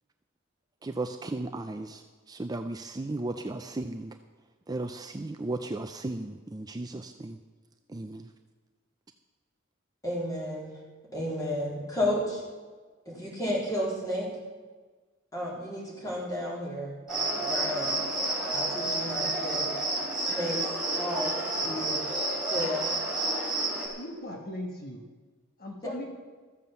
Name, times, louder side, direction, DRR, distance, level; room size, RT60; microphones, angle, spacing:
voice 1, 0.8-4.2 4.7-7.4 7.9-8.3, right 2 dB, 20° right, 7 dB, 0.5 m, -35 dB
voice 2, 10.0-10.8 11.1-12.4 13.1-14.3 15.3-17.0 17.4-18.0 18.5-19.7 20.1-22.0 22.4-22.9 25.8-25.9, equal, 20° left, -4 dB, 3.7 m, -32 dB
Cricket, 17.1-23.9, right 2 dB, 5° right, 3.2 m, -30 dB
voice 3, 23.9-25.0 25.6-26.1, left 1 dB, 50° left, 2 dB, 1.3 m, -38 dB
14.0 x 7.5 x 6.9 m, 1.4 s
head